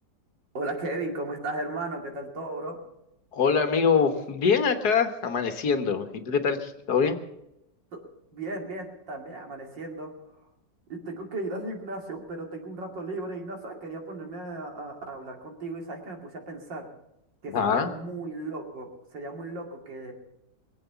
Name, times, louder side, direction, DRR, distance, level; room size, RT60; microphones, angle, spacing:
voice 1, 0.5-2.8 8.3-10.1 10.9-16.9 17.4-20.1, right 2 dB, 80° right, 2 dB, 3.3 m, -35 dB
voice 2, 3.3-7.2 17.5-17.9, left 6 dB, 60° left, 7 dB, 1.7 m, -24 dB
22.0 x 8.1 x 6.9 m, 0.84 s
omnidirectional pair, 1.9 m